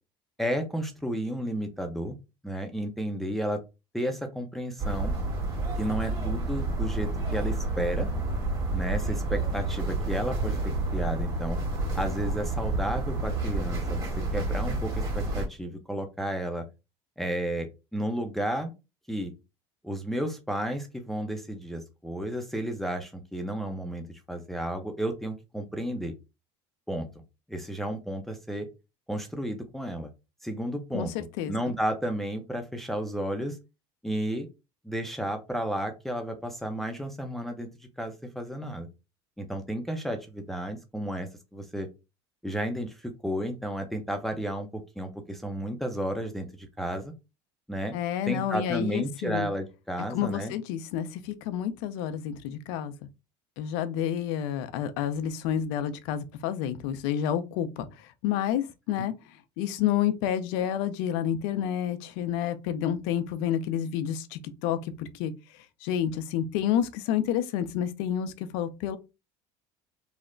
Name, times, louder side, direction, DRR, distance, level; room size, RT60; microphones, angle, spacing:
voice 1, 0.4-2.1 2.4-3.6 3.9-5.1 5.8-8.1 8.7-10.6 10.9-11.6 11.9-16.7 17.2-18.7 19.1-19.3 19.8-26.1 26.9-27.1 27.5-28.7 29.1-30.1 30.4-31.1 31.5-33.6 34.0-34.5 34.8-37.7 38.0-38.9 39.4-41.9 42.4-47.1 47.7-47.9 48.3-50.5, right 1 dB, ahead, 0.5 m, -32 dB
sound 1, 4.8-15.5, right 2 dB, 30° right, 1.7 m, -29 dB
voice 2, 30.9-31.7 47.9-49.5 50.1-52.9 53.6-59.1 59.6-65.3 65.8-69.0, left 10 dB, 80° left, 0.5 m, -29 dB
3.1 x 2.1 x 3.7 m
supercardioid pair, 110°, 13 cm